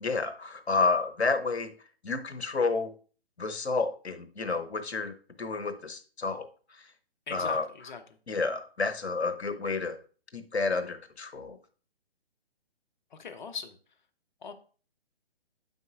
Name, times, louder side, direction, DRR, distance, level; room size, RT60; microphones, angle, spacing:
voice 1, 0.0-1.7 2.0-2.9 3.4-5.1 5.4-6.5 7.3-7.7 8.3-10.0 10.3-11.6, left 4 dB, 80° left, 9 dB, 1.0 m, -30 dB
voice 2, 7.3-8.0 13.2-13.7 14.4-14.5, left 5 dB, 45° left, 8 dB, 1.0 m, -40 dB
9.3 x 7.8 x 2.5 m, 0.39 s
figure-of-eight pair, 140°, 32 cm